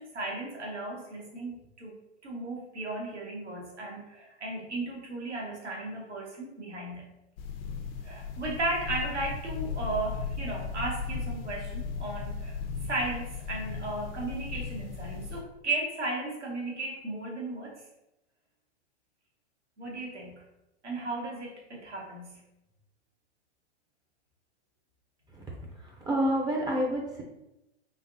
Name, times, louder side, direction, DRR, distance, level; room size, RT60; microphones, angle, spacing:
voice 1, 0.0-7.1 8.0-12.6 12.8-17.8 19.8-20.4 20.8-22.4, right 2 dB, 90° right, -2 dB, 1.2 m, -35 dB
sound 1, 7.4-15.4, left 5 dB, 60° left, 0.6 m, -36 dB
voice 2, 25.8-27.2, equal, 10° right, -2 dB, 0.4 m, -29 dB
3.9 x 3.4 x 2.5 m, 0.92 s
hypercardioid pair, 105°, 34 cm